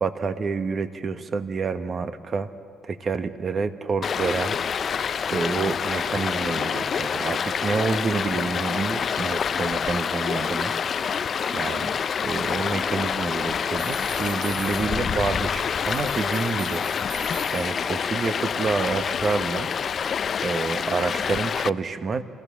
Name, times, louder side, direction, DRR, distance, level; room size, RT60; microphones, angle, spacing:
voice 1, 0.0-2.5 2.8-4.9 5.1-11.2 11.5-12.0 12.2-16.8 17.1-19.7 20.4-22.2, right 4 dB, 45° right, 10 dB, 1.2 m, -28 dB
Stream, 4.0-21.7, left 7 dB, 50° left, 0.4 m, -27 dB
sound 1, 13.8-15.4 15.9-18.1, right 6 dB, 80° right, 2.3 m, -42 dB
28.5 x 16.0 x 7.2 m, 2.2 s
cardioid pair, 80°, 0 cm